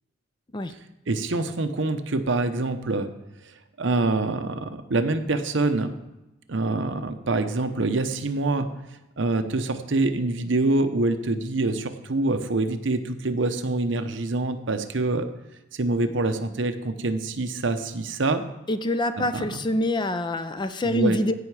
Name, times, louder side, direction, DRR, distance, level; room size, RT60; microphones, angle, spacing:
voice 1, 1.1-3.1 3.8-5.9 6.5-8.7 9.2-15.3 15.7-18.4 19.1-19.6 20.8-21.2, right 2 dB, 65° right, 8 dB, 0.8 m, -25 dB
voice 2, 18.7-21.3, left 1 dB, 25° left, 11 dB, 0.5 m, -25 dB
16.5 x 5.8 x 4.8 m, 0.99 s
head